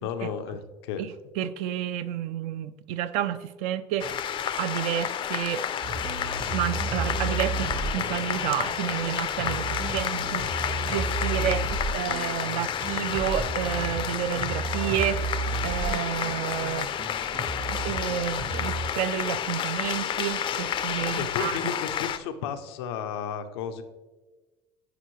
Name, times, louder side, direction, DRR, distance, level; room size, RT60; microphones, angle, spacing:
voice 1, 0.0-1.1 11.4-11.5 21.2-23.8, left 7 dB, 90° left, 8 dB, 0.6 m, -33 dB
voice 2, 1.0-5.6 6.5-11.6 11.9-16.9 17.7-21.7, right 11 dB, 70° right, 12 dB, 0.4 m, -30 dB
sound 1, 4.0-22.2, left 9 dB, 40° left, 0.4 m, -30 dB
sound 2, 5.8-18.9, right 3 dB, 50° right, 1.1 m, -33 dB
10.0 x 4.6 x 3.1 m, 1.2 s
supercardioid pair, 95°, 13 cm